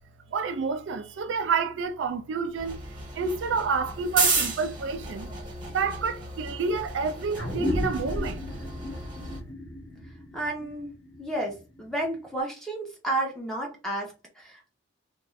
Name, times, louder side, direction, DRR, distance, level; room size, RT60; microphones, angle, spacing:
voice 1, 0.3-2.8 3.1-5.3 5.7-8.4, right 5 dB, 65° right, 0.3 m, -29 dB
sound 1, 2.6-9.4, right 3 dB, 25° right, 0.9 m, -33 dB
sound 2, 7.3-12.2, left 1 dB, 65° left, 1.5 m, -34 dB
voice 2, 10.3-10.9 11.2-14.7, right 1 dB, ahead, 0.8 m, -32 dB
2.5 x 2.4 x 3.2 m
head